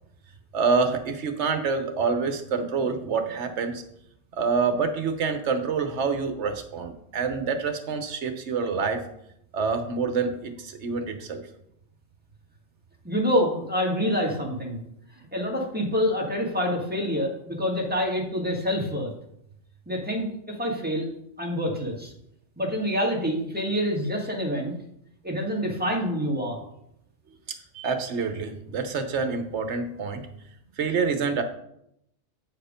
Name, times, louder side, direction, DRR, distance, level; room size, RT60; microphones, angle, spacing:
voice 1, 0.5-3.8 4.4-9.0 9.5-11.5 27.7-30.2 30.8-31.4, right 5 dB, 65° right, 7 dB, 1.2 m, -27 dB
voice 2, 13.0-14.8 15.1-19.1 19.9-21.1 21.4-22.1 22.6-24.7 25.2-26.6, equal, 10° right, -2 dB, 1.7 m, -27 dB
8.4 x 4.6 x 5.1 m, 0.76 s
omnidirectional pair, 1.3 m